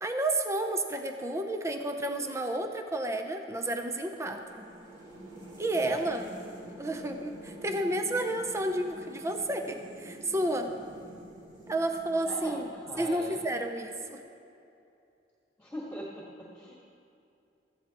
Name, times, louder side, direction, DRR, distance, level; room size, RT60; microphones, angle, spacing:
voice 1, 0.0-4.7 5.6-6.2 6.8-10.7 11.7-12.7 13.0-14.2, right 1 dB, 15° right, 5 dB, 0.7 m, -31 dB
sound 1, 4.4-13.7, right 1 dB, 45° right, 3.0 m, -48 dB
voice 2, 5.7-6.0 12.2-13.4 15.6-16.8, equal, 10° left, -5 dB, 1.7 m, -41 dB
16.5 x 14.0 x 3.0 m, 2.7 s
head